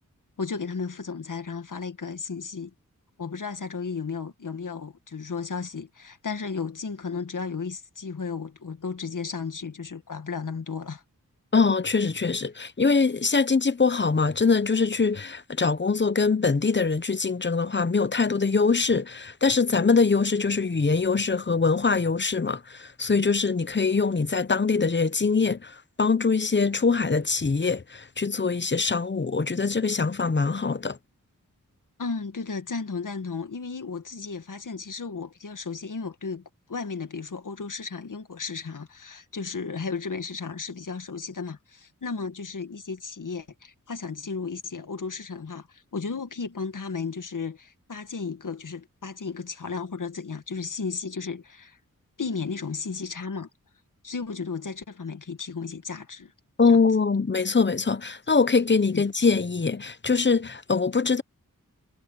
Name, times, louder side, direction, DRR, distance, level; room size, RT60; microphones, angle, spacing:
voice 1, 0.4-2.7 3.2-11.0 32.0-36.4 36.7-51.8 52.2-53.5 54.0-56.3 56.7-56.9 58.9-59.0, left 5 dB, 65° left, 2.1 m, -34 dB
voice 2, 11.5-31.0 56.6-61.2, left 4 dB, 35° left, 0.9 m, -23 dB
wide cardioid pair, 65°, 33 cm